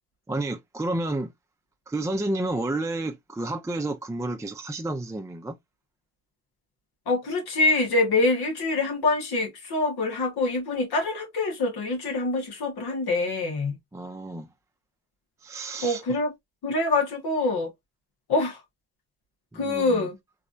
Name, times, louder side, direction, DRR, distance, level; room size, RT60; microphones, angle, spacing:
voice 1, 0.3-1.3 1.9-5.5 13.9-14.5 15.4-16.0 19.5-20.1, right 2 dB, 10° right, 0.4 m, -30 dB
voice 2, 7.1-13.8 15.8-16.3 16.6-17.7 18.3-18.6 19.5-20.2, left 2 dB, 85° left, 1.4 m, -25 dB
3.1 x 2.6 x 2.5 m
cardioid pair, 60°, 37 cm